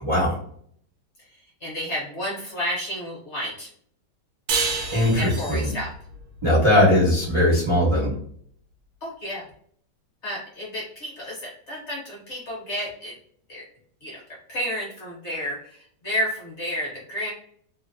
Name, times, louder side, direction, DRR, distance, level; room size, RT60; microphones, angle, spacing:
voice 1, 0.0-0.3 4.9-5.7 6.4-8.1, left 1 dB, 40° right, -7 dB, 0.4 m, -19 dB
voice 2, 1.6-3.7 5.2-5.9 9.0-9.4 10.2-13.2 13.5-13.6 14.0-14.2 14.5-17.3, equal, 50° left, -4 dB, 1.0 m, -31 dB
sound 1, 4.5-7.7, right 4 dB, 70° right, 1.0 m, -30 dB
2.8 x 2.0 x 2.5 m, 0.62 s
omnidirectional pair, 1.8 m